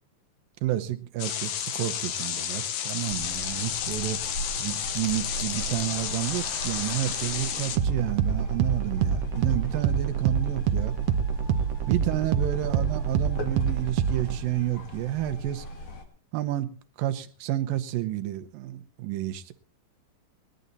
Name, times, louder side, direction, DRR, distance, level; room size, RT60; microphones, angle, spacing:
voice 1, 0.6-10.9 11.9-15.7 16.3-16.7 17.0-19.5, right 13 dB, 85° right, 9 dB, 2.7 m, -30 dB
sound 1, 1.2-7.8, left 9 dB, 85° left, 3.0 m, -31 dB
sound 2, 3.1-16.0, equal, 45° left, 2.5 m, -39 dB
sound 3, 5.7-14.4, right 7 dB, 65° right, 1.7 m, -27 dB
19.5 x 12.5 x 4.0 m, 0.40 s
omnidirectional pair, 4.0 m